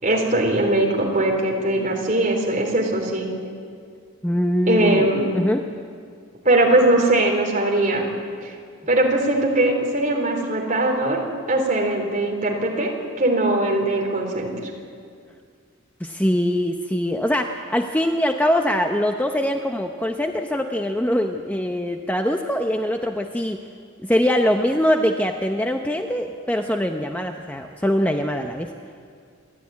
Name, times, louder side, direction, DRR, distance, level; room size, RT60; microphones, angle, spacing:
voice 1, 0.0-3.3 4.7-5.3 6.4-8.0 8.4-8.5 8.9-11.2 11.5-14.7, right 1 dB, 35° right, 0 dB, 3.8 m, -20 dB
voice 2, 4.2-5.6 16.0-23.6 24.0-28.7, equal, 5° left, 4 dB, 0.7 m, -23 dB
28.5 x 12.5 x 9.6 m, 2.2 s
head